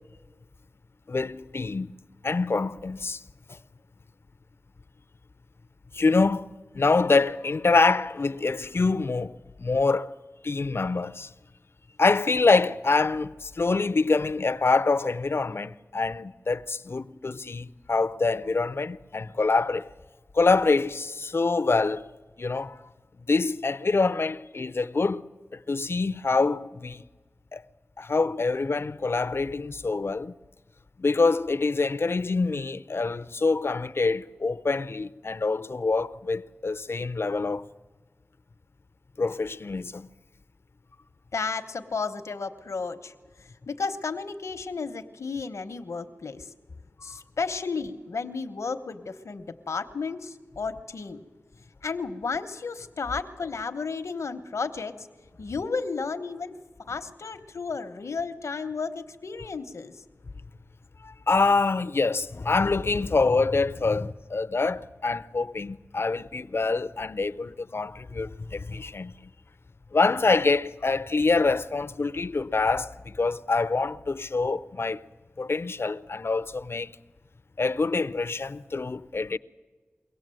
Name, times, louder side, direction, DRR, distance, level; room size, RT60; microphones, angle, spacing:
voice 1, 1.1-1.9 2.2-3.2 5.9-10.1 10.4-11.3 12.0-19.9 20.3-22.0 22.4-22.8 23.2-27.0 27.5-27.6 28.0-30.3 31.0-37.7 39.2-40.1 47.1-47.2 61.0-69.1 69.9-75.0 75.4-76.9 77.6-79.4, left 3 dB, 55° left, 0.6 m, -25 dB
voice 2, 41.3-43.1 43.7-46.5 47.0-51.2 51.8-55.1 55.4-56.6 56.9-59.9, left 4 dB, 90° left, 1.0 m, -33 dB
23.0 x 17.5 x 7.7 m
cardioid pair, 45°, 5 cm